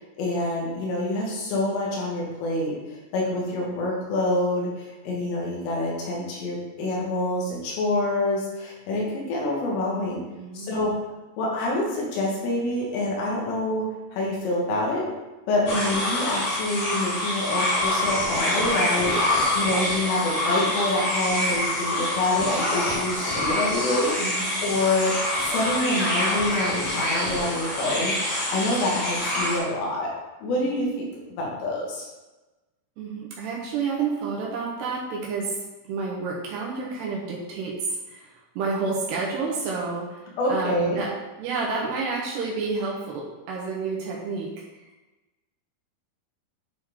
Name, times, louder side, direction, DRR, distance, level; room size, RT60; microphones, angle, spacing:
voice 1, 0.0-10.2 10.5-10.9 11.4-13.9 14.1-15.1 15.5-28.1 28.5-30.1 30.4-32.1 40.4-41.0, left 1 dB, 85° left, -3 dB, 4.1 m, -27 dB
voice 2, 10.4-10.8 24.2-24.6 33.0-35.6 35.8-41.1 41.4-44.6, right 4 dB, 75° right, -3 dB, 2.7 m, -30 dB
sound 1, 15.7-29.6, left 1 dB, 55° left, 1.8 m, -26 dB
10.5 x 4.3 x 3.7 m, 1.1 s
omnidirectional pair, 5.6 m